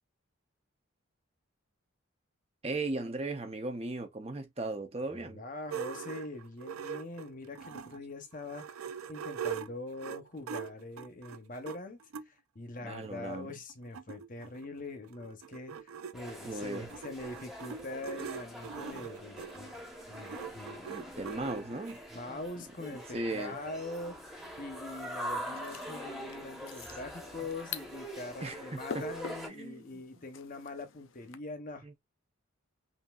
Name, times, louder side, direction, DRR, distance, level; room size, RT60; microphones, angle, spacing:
voice 1, 2.6-5.4 12.8-13.6 16.4-16.9 20.9-22.0 22.3-22.4 23.1-23.6 28.4-29.0 29.5-30.0 31.8-32.0, right 2 dB, 30° right, 0.7 m, -37 dB
voice 2, 5.1-12.0 12.3-19.8 20.1-20.9 21.3-32.0, left 2 dB, 40° left, 0.9 m, -43 dB
sound 1, 5.7-8.0 8.4-12.3 13.0-13.1 13.4-13.5 13.7-22.0, right 7 dB, 85° right, 0.5 m, -42 dB
sound 2, 16.1-29.5, equal, ahead, 1.0 m, -44 dB
sound 3, 25.3-31.4, left 6 dB, 65° left, 0.5 m, -47 dB
5.6 x 2.7 x 2.4 m
head